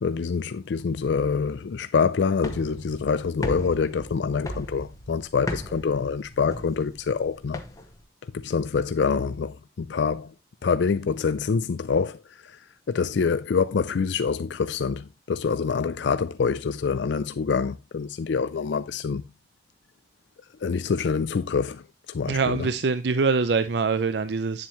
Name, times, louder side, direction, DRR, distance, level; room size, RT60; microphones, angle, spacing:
voice 1, 0.0-7.6 8.3-10.3 10.6-12.2 12.4-12.6 12.9-19.2 20.6-22.7, left 5 dB, 75° left, 0.4 m, -26 dB
sound 1, 2.4-8.0, equal, 20° left, 1.0 m, -37 dB
voice 2, 22.3-24.7, right 4 dB, 65° right, 0.5 m, -24 dB
9.0 x 7.4 x 3.0 m
head